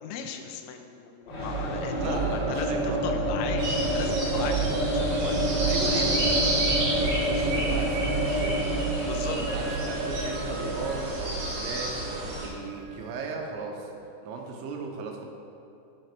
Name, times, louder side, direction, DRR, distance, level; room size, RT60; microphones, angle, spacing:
voice 1, 0.0-4.7 5.2-6.1 9.1-9.4, left 7 dB, 85° left, 5 dB, 3.1 m, -37 dB
sound 1, 1.3-13.1, right 1 dB, 65° left, 1.0 m, -28 dB
voice 2, 2.0-3.3 4.1-4.2 4.5-4.8 5.6-8.7 9.3-13.9 14.2-15.2, right 4 dB, 90° right, 1 dB, 3.3 m, -36 dB
sound 2, 3.6-12.5, right 1 dB, 50° right, 3.4 m, -31 dB
Wind instrument woodwind instrument, 9.0-13.3, right 4 dB, 75° right, 2.9 m, -45 dB
9.3 x 7.8 x 4.7 m, 2.8 s
omnidirectional pair, 5.2 m